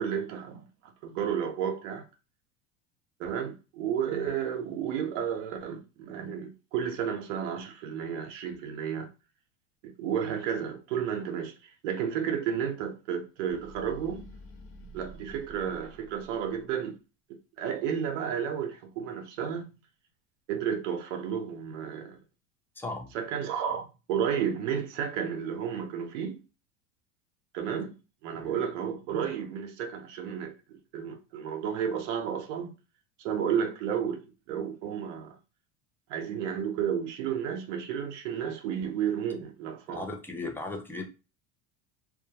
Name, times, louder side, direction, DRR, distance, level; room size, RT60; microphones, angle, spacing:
voice 1, 0.0-2.1 3.2-9.1 9.8-14.3 14.9-17.0 17.3-19.7 20.5-22.2 23.1-26.4 27.5-27.9 28.2-32.7 33.2-35.4 36.1-40.1, right 8 dB, 85° right, 0.6 m, -32 dB
sound 1, 13.4-16.7, equal, 40° left, 0.7 m, -49 dB
voice 2, 22.8-23.1 28.4-28.5 39.9-41.1, left 3 dB, 5° left, 0.4 m, -36 dB
2.3 x 2.1 x 2.7 m
supercardioid pair, 100°, 36 cm